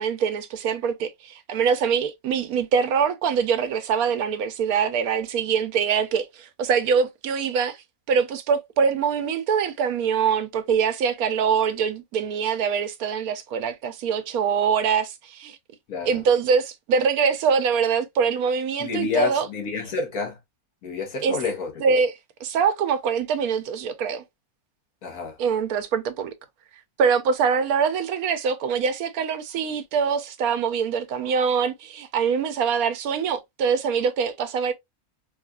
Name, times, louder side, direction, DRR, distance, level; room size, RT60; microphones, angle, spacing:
voice 1, 0.0-7.8 8.1-15.6 16.1-19.5 21.2-21.4 21.8-22.1 22.4-24.2 25.4-26.3 27.0-34.7, right 6 dB, 85° right, 1.1 m, -24 dB
voice 2, 15.9-16.2 18.8-20.4 20.8-21.7 25.0-25.4, left 5 dB, 80° left, 1.7 m, -28 dB
4.2 x 2.4 x 2.3 m
omnidirectional pair, 1.5 m